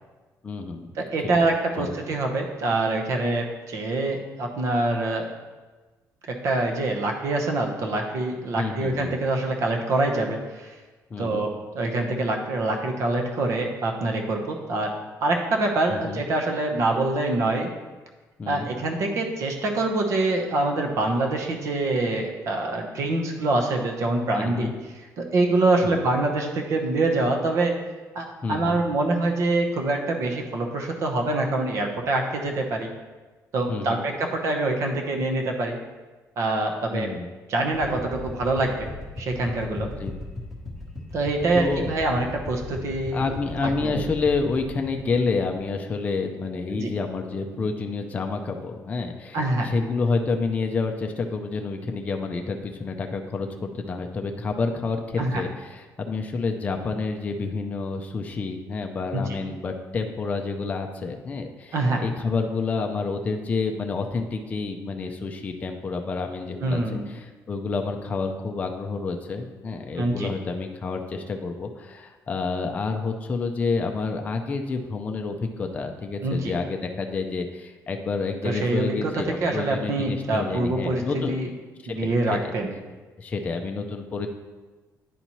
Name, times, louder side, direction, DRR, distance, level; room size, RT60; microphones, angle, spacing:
voice 1, 0.4-0.9 1.8-1.9 8.6-9.2 11.1-11.5 15.9-16.2 18.4-18.7 24.3-24.7 25.8-26.0 28.4-28.8 33.7-34.0 36.9-37.3 39.8-40.2 41.5-41.9 43.1-81.5 82.0-82.1 82.4-82.5 83.2-84.3, left 4 dB, 25° left, 3 dB, 0.4 m, -29 dB
voice 2, 1.0-5.3 6.3-10.7 11.2-14.9 15.2-17.7 18.5-24.7 25.2-27.7 28.1-32.9 33.5-35.8 36.4-37.1 37.5-38.9 39.2-39.9 41.1-43.3 43.6-44.0 46.7-46.9 49.3-49.7 55.2-55.4 59.1-59.4 61.7-62.0 66.6-67.1 70.0-70.3 76.2-76.5 78.4-81.5 81.9-82.7, right 2 dB, 55° right, 3 dB, 0.9 m, -25 dB
sound 1, 37.7-45.9, left 2 dB, ahead, 1.1 m, -38 dB
9.9 x 4.1 x 3.0 m, 1.3 s
cardioid pair, 160°, 6 cm